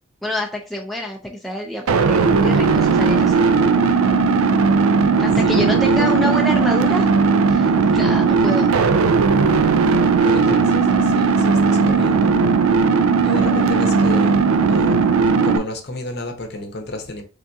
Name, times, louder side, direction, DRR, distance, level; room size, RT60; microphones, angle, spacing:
voice 1, 0.2-3.4 5.2-7.1 7.5-8.7, left 1 dB, ahead, 0.4 m, -27 dB
sound 1, 1.9-15.6, right 4 dB, 90° right, 0.4 m, -16 dB
voice 2, 5.4-6.3 10.3-12.4 13.2-17.2, left 2 dB, 50° left, 0.8 m, -31 dB
3.7 x 3.4 x 2.7 m
head